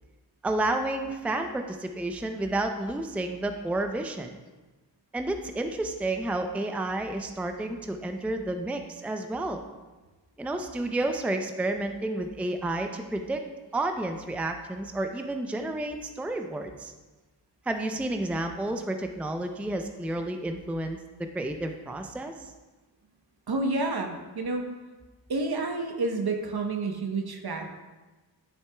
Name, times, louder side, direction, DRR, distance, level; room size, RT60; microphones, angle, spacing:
voice 1, 0.4-4.4 5.1-9.6 10.4-13.4 13.7-16.9 17.7-21.0 21.3-22.5, right 2 dB, 5° right, 5 dB, 0.5 m, -31 dB
voice 2, 23.5-24.7 25.3-27.7, right 3 dB, 55° right, 4 dB, 1.0 m, -29 dB
9.8 x 4.5 x 2.3 m, 1.2 s
cardioid pair, 40°, 45 cm